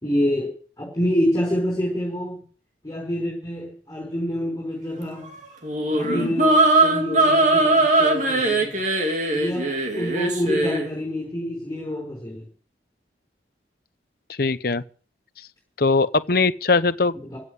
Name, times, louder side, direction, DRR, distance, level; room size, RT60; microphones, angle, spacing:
voice 1, 0.0-2.4 2.8-5.3 5.9-8.8 9.3-12.5 17.3-17.4, equal, 15° left, 5.1 m, -27 dB
sound 1, 5.6-10.9, right 2 dB, 40° right, 2.7 m, -20 dB
voice 2, 6.0-6.4 14.4-14.8 15.8-17.1, left 3 dB, 50° left, 0.8 m, -21 dB
16.0 x 7.7 x 8.0 m
head